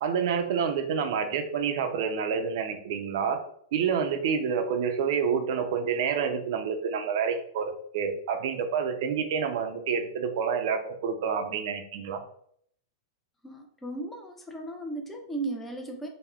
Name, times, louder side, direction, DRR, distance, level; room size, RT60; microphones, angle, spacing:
voice 1, 0.0-3.4 3.7-12.2, right 6 dB, 60° right, 6 dB, 0.4 m, -28 dB
voice 2, 13.4-16.1, right 2 dB, 5° left, 2 dB, 0.4 m, -36 dB
3.4 x 2.1 x 2.3 m, 0.65 s
hypercardioid pair, 140°, 2 cm